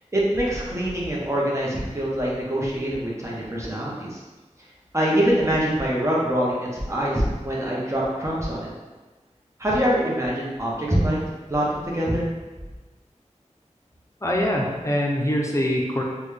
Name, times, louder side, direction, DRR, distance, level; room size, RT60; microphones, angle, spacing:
voice 1, 0.1-4.2 4.9-8.7 9.6-11.2 11.5-12.3, right 1 dB, 20° right, -5 dB, 0.9 m, -24 dB
voice 2, 14.2-16.0, equal, 25° left, -1 dB, 0.6 m, -23 dB
3.9 x 2.3 x 3.2 m, 1.2 s
wide cardioid pair, 45°, 13 cm